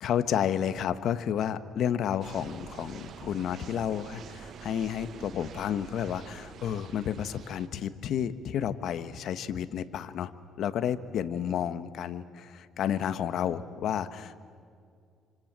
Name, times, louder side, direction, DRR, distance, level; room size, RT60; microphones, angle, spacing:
voice 1, 0.0-10.3 10.6-14.4, left 9 dB, 65° left, 12 dB, 1.3 m, -31 dB
sound 1, 2.2-7.7, right 8 dB, 55° right, 1.2 m, -47 dB
28.0 x 25.5 x 7.5 m, 2.2 s
cardioid pair, 110°, 0 cm